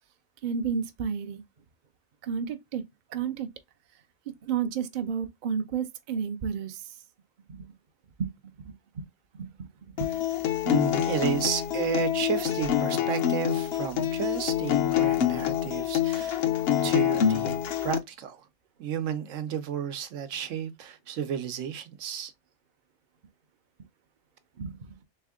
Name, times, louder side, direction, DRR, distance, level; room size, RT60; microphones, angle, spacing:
voice 1, 0.4-1.4 2.2-2.8 3.1-3.5 4.3-6.8 7.5-7.7 8.2-9.1 9.4-10.1 16.9-17.0 24.6-25.0, right 6 dB, 50° right, 0.6 m, -32 dB
Acoustic guitar, 10.0-18.0, left 10 dB, 60° left, 0.8 m, -26 dB
voice 2, 10.6-16.5 16.8-18.5 18.8-22.3, right 8 dB, 80° right, 1.0 m, -32 dB
3.5 x 3.3 x 3.5 m
omnidirectional pair, 1.3 m